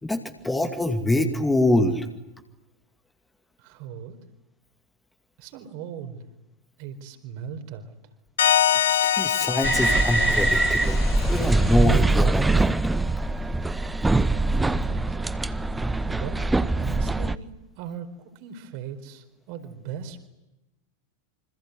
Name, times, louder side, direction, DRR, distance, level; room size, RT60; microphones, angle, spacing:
voice 1, 0.0-2.1 8.7-11.0 11.3-12.7, left 1 dB, 5° left, 6 dB, 2.4 m, -24 dB
voice 2, 3.6-4.2 5.4-6.3 6.8-7.9 14.6-15.4 16.1-20.3, right 7 dB, 45° right, 8 dB, 4.5 m, -39 dB
sound 1, 8.4-11.8, left 10 dB, 65° left, 1.1 m, -24 dB
sound 2, 9.6-17.4, right 2 dB, 10° right, 1.0 m, -23 dB
27.5 x 26.0 x 8.2 m, 0.99 s
figure-of-eight pair, 90°, 0 cm